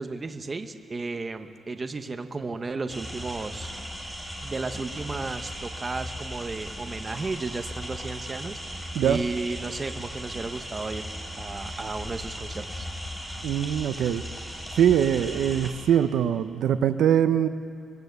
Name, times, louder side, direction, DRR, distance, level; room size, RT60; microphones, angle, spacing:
voice 1, 0.0-3.7 4.4-11.1 11.4-12.9, right 3 dB, 25° right, 7 dB, 1.1 m, -34 dB
sound 1, 2.9-15.7, equal, 5° left, 4.0 m, -37 dB
voice 2, 13.4-14.2 14.8-17.5, right 9 dB, 80° right, 10 dB, 0.7 m, -22 dB
23.5 x 21.0 x 8.2 m, 2.3 s
wide cardioid pair, 155°, 0 cm